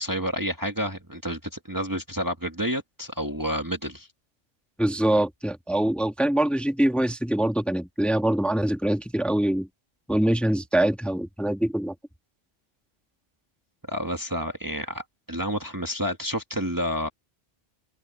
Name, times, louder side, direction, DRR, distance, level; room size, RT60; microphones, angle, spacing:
voice 1, 0.0-4.1 13.9-17.1, equal, 20° right, 1.6 m, -29 dB
voice 2, 4.8-9.7 10.1-11.9, right 1 dB, ahead, 1.5 m, -24 dB
open air
omnidirectional pair, 1.1 m